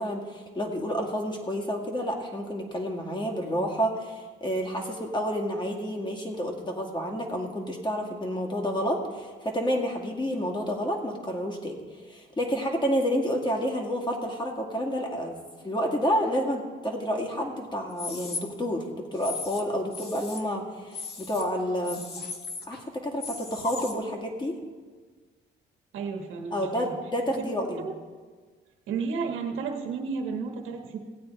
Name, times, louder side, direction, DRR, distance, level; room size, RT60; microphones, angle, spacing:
voice 1, 0.0-11.8 12.1-15.4 15.6-22.1 22.7-24.6 26.5-27.9, equal, 25° left, 1 dB, 2.1 m, -29 dB
sound 1, 17.9-18.4 19.1-19.6 19.9-20.4 20.9-21.4 21.8-22.8 23.2-23.9, left 4 dB, 55° left, 1.4 m, -36 dB
voice 2, 25.9-26.9 27.4-27.5 27.7-28.0 28.9-31.0, right 5 dB, 85° right, 3 dB, 1.3 m, -32 dB
16.5 x 8.7 x 4.5 m, 1.5 s
cardioid pair, 90°, 20 cm